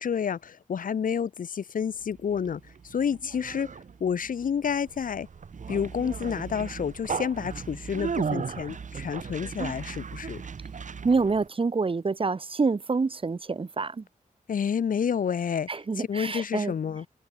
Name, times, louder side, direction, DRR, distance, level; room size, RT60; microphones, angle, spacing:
voice 1, 0.0-3.7 4.0-5.3 5.7-10.4 14.5-15.7 16.0-17.1, left 7 dB, 85° left, 1.3 m, -29 dB
Conversation, 2.0-11.5, right 6 dB, 65° right, 3.1 m, -36 dB
voice 2, 11.0-14.0 15.7-16.7, right 4 dB, 40° right, 2.0 m, -27 dB
wide cardioid pair, 120°, 14 cm